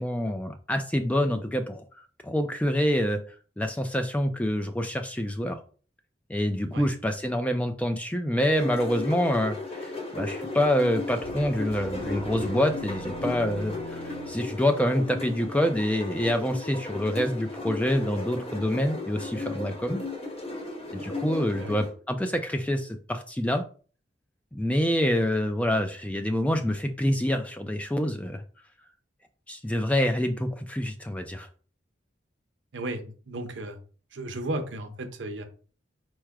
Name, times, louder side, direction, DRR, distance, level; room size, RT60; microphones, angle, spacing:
voice 1, 0.0-1.8 2.2-3.2 3.6-5.6 6.3-20.0 20.9-23.6 24.5-28.4 29.5-31.5, equal, 5° left, 7 dB, 0.3 m, -26 dB
sound 1, 8.6-21.9, left 2 dB, 30° left, 1.0 m, -35 dB
sound 2, 11.2-14.4, right 1 dB, 60° left, 1.0 m, -42 dB
voice 2, 32.7-33.8 34.1-35.5, right 1 dB, 75° right, 6 dB, 0.7 m, -34 dB
4.6 x 2.1 x 4.6 m, 0.40 s
head